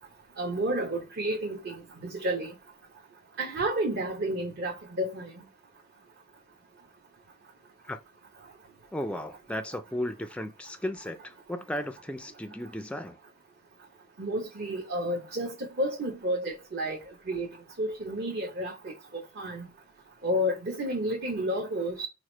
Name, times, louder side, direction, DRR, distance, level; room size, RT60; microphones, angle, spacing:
voice 1, 0.4-2.5 3.4-5.3 14.2-17.0 17.3-17.5 17.8-19.7 20.2-22.1, right 1 dB, 50° right, 0.9 m, -31 dB
voice 2, 8.9-13.2, left 1 dB, 5° left, 0.3 m, -35 dB
4.8 x 2.0 x 4.3 m
head